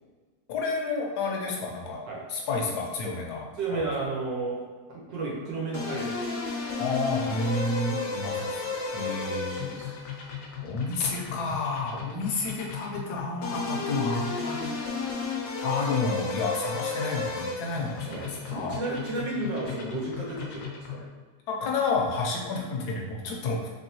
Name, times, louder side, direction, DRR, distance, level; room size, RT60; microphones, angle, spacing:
voice 1, 0.5-2.0 2.3-3.8 6.8-8.6 8.9-9.6 10.6-14.8 15.6-18.8 21.5-23.7, left 3 dB, 70° left, -1 dB, 1.2 m, -30 dB
voice 2, 3.6-4.6 4.9-6.2 8.9-9.9 18.1-21.0, right 2 dB, 80° right, -3 dB, 1.6 m, -33 dB
sound 1, 5.7-21.1, left 4 dB, 85° left, 1.4 m, -34 dB
3.7 x 3.4 x 2.7 m, 1.4 s
omnidirectional pair, 2.0 m